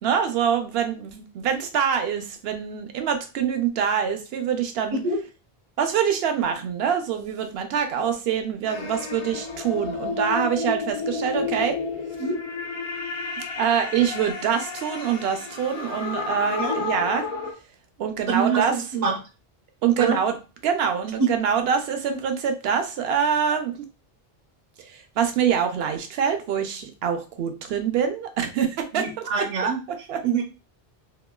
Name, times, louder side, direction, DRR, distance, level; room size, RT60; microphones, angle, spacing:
voice 1, 0.0-5.0 5.8-11.8 13.6-17.3 18.0-18.8 19.8-20.4 20.6-23.8 24.8-29.1 29.4-29.5 29.9-30.2, right 7 dB, 80° right, 7 dB, 0.8 m, -25 dB
sound 1, 8.7-17.5, left 4 dB, 55° left, 0.3 m, -31 dB
voice 2, 18.3-19.1 20.0-20.2 21.2-21.3 28.9-29.8 30.2-30.4, right 5 dB, 50° right, 1 dB, 0.5 m, -24 dB
2.9 x 2.2 x 2.2 m, 0.31 s
omnidirectional pair, 1.0 m